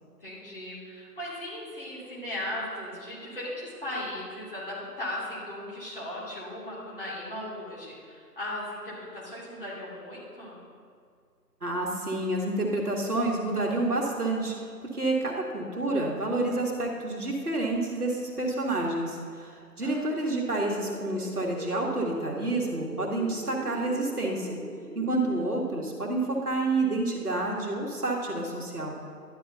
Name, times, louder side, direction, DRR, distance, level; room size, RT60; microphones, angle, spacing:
voice 1, 0.2-10.6 19.8-20.0, left 1 dB, 35° left, -8 dB, 2.6 m, -37 dB
voice 2, 11.6-14.5 14.9-24.6 24.9-29.0, right 2 dB, 65° right, -1 dB, 1.6 m, -29 dB
sound 1, 20.6-25.9, right 1 dB, 25° right, 1.3 m, -41 dB
11.5 x 9.8 x 2.7 m, 2.2 s
figure-of-eight pair, 165°, 49 cm